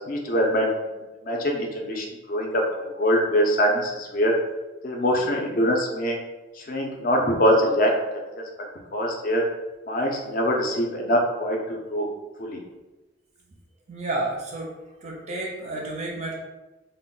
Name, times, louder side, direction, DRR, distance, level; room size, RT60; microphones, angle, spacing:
voice 1, 0.1-0.7 1.2-2.6 3.0-4.3 4.8-6.2 6.7-7.9 8.9-9.4 9.9-12.1 12.4-12.6, equal, 45° left, 0 dB, 0.5 m, -23 dB
voice 2, 13.9-14.7 15.0-16.3, right 2 dB, 35° right, -2 dB, 0.4 m, -31 dB
2.2 x 2.0 x 3.7 m, 1.1 s
head